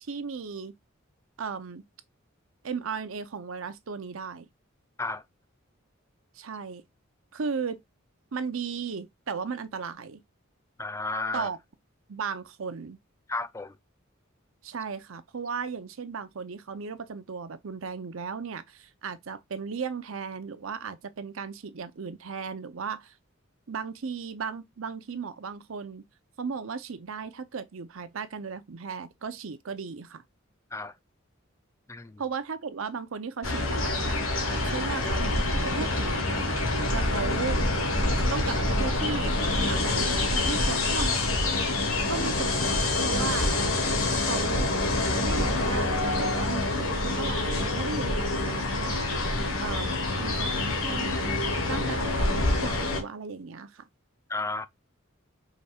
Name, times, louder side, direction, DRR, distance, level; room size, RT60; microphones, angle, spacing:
voice 1, 0.0-0.7 1.4-1.8 2.6-4.5 6.4-6.8 7.3-7.8 8.3-10.2 11.3-11.6 12.1-13.0 14.6-23.1 23.7-26.0 26.4-30.2 32.2-34.2 34.5-36.3 36.9-37.6 38.3-41.2 42.1-43.5 44.2-44.7 45.2-49.1 49.6-51.3 51.7-53.8, right 5 dB, 75° right, 0.7 m, -36 dB
voice 2, 10.8-11.5 13.3-13.7 30.7-30.9 31.9-32.2 54.3-54.7, left 3 dB, 15° left, 0.4 m, -32 dB
sound 1, 33.4-53.0, left 2 dB, 80° left, 1.5 m, -26 dB
5.1 x 4.1 x 2.4 m
head